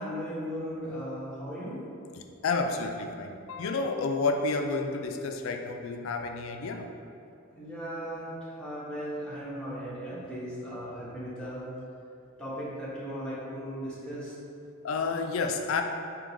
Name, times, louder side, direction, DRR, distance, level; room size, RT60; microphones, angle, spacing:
voice 1, 0.0-1.8 7.5-11.6 12.4-14.3, equal, 5° left, -10 dB, 1.2 m, -37 dB
voice 2, 2.2-6.9 14.8-15.8, left 4 dB, 75° left, 5 dB, 0.4 m, -30 dB
3.7 x 2.9 x 4.8 m, 2.6 s
head